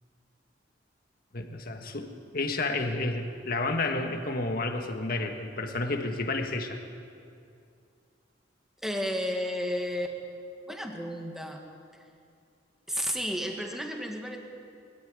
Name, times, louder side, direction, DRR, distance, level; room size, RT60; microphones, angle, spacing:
voice 1, 1.3-6.8, left 2 dB, 55° left, 5 dB, 1.6 m, -31 dB
voice 2, 8.8-10.2 10.7-11.6 12.9-14.4, equal, ahead, 2 dB, 1.9 m, -32 dB
21.0 x 13.5 x 9.7 m, 2.4 s
head